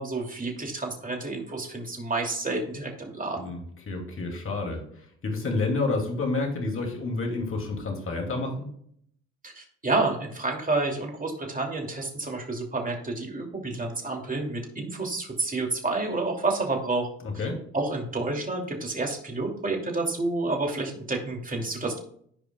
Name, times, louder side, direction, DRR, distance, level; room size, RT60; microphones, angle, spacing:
voice 1, 0.0-3.5 9.4-17.1 17.3-17.4 17.7-22.0, right 3 dB, 25° right, 1 dB, 2.8 m, -29 dB
voice 2, 3.9-4.8 5.2-8.7 17.2-17.5, left 3 dB, 40° left, 2 dB, 2.7 m, -29 dB
14.5 x 5.0 x 2.4 m, 0.64 s
hypercardioid pair, 60°, 34 cm